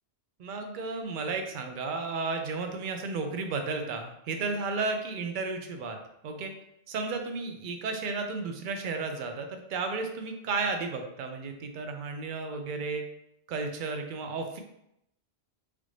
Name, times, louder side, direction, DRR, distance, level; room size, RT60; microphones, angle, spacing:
voice 1, 0.4-6.0 6.2-6.5 6.9-13.0 13.5-14.6, right 4 dB, 60° right, 5 dB, 0.6 m, -33 dB
3.3 x 2.5 x 3.1 m, 0.80 s
omnidirectional pair, 1.1 m